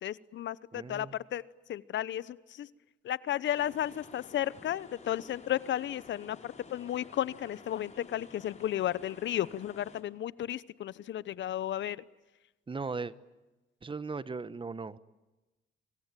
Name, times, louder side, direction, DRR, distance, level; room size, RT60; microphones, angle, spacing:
voice 1, 0.0-1.4 1.7-2.7 3.0-12.0, left 11 dB, 70° left, 19 dB, 1.0 m, -33 dB
voice 2, 0.7-1.1 12.7-13.1 13.8-15.0, right 4 dB, 25° right, 16 dB, 1.3 m, -37 dB
sound 1, 3.5-10.0, left 4 dB, 35° left, 4.8 m, -52 dB
26.0 x 25.5 x 9.1 m, 1.1 s
cardioid pair, 90°, 20 cm